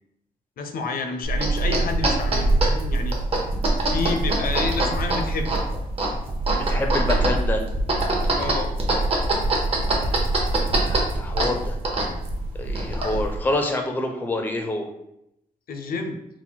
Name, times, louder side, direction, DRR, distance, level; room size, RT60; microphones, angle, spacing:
voice 1, 0.6-3.2 3.8-5.5 8.4-8.8 15.7-16.2, left 4 dB, 75° left, 6 dB, 0.5 m, -29 dB
sound 1, 1.2-13.4, right 2 dB, 40° right, 0.8 m, -23 dB
voice 2, 6.6-7.7 10.0-11.8 12.6-14.9, left 2 dB, 10° left, 4 dB, 0.4 m, -28 dB
4.0 x 2.0 x 4.4 m, 0.80 s
wide cardioid pair, 165°, 15 cm